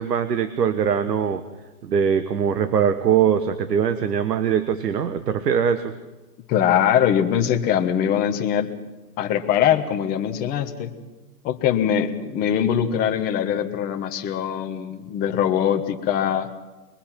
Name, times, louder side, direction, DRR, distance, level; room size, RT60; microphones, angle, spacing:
voice 1, 0.0-1.4 1.8-5.9, right 8 dB, 80° right, 11 dB, 1.4 m, -22 dB
voice 2, 6.5-8.7 9.2-10.9 11.4-16.5, left 9 dB, 20° left, 5 dB, 1.2 m, -22 dB
23.0 x 22.0 x 5.9 m, 1.1 s
hypercardioid pair, 150°, 48 cm